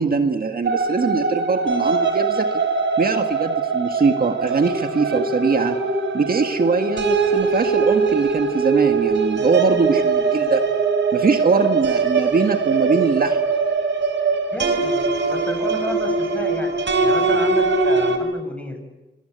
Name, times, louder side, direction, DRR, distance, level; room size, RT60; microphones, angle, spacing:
voice 1, 0.0-2.6 3.0-5.8 6.1-10.6 11.1-13.4, right 4 dB, 50° right, 6 dB, 1.8 m, -21 dB
sound 1, 0.7-18.2, right 4 dB, 80° right, 4.1 m, -21 dB
voice 2, 14.5-18.8, left 1 dB, 5° left, 5 dB, 6.8 m, -32 dB
26.0 x 26.0 x 8.2 m, 1.1 s
wide cardioid pair, 130°, 19 cm